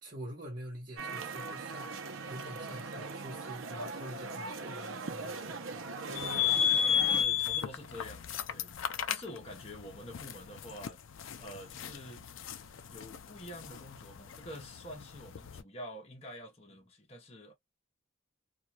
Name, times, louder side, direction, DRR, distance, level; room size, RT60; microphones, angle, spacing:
voice 1, 0.0-5.7, equal, 45° right, 1.1 m, -46 dB
sound 1, 1.0-7.2, right 3 dB, 75° right, 0.7 m, -40 dB
voice 2, 6.0-8.7 9.1-11.0 11.4-12.3 12.9-17.5, left 1 dB, 30° left, 0.8 m, -47 dB
sound 2, 6.1-15.6, left 9 dB, 70° left, 0.4 m, -34 dB
2.4 x 2.3 x 2.7 m
head